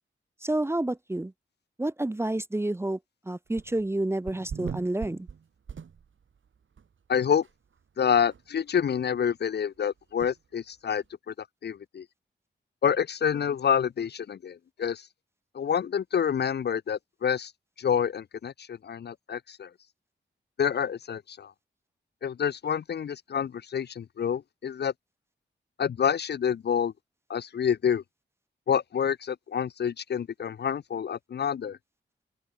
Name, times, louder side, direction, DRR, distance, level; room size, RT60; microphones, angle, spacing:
voice 1, 0.4-1.3 1.8-3.0 3.3-5.3, right 1 dB, 10° right, 0.6 m, -29 dB
sound 1, 3.5-3.9 4.3-6.4 6.8-6.9 7.4-7.5 7.8-7.9 8.3-8.4 10.2-10.3, right 6 dB, 70° right, 3.1 m, -40 dB
voice 2, 7.1-7.4 8.0-11.3 11.6-12.0 12.8-15.0 15.5-17.5 17.8-19.7 20.6-21.5 22.2-24.9 25.8-26.9 27.3-28.0 28.7-31.8, left 8 dB, 55° left, 0.5 m, -28 dB
open air
cardioid pair, 55°, 20 cm